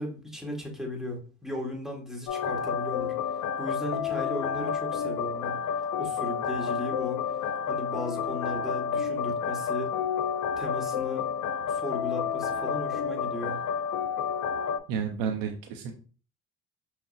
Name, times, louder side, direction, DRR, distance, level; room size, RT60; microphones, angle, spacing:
voice 1, 0.0-3.1 3.6-5.6 6.0-7.2 7.7-9.9 10.6-11.2 11.7-13.6, left 1 dB, ahead, 0 dB, 1.4 m, -36 dB
sound 1, 2.3-14.8, left 7 dB, 65° left, 0.5 m, -30 dB
voice 2, 14.9-15.9, right 7 dB, 80° right, 3 dB, 0.6 m, -31 dB
5.6 x 2.0 x 2.6 m, 0.39 s
supercardioid pair, 75°, 34 cm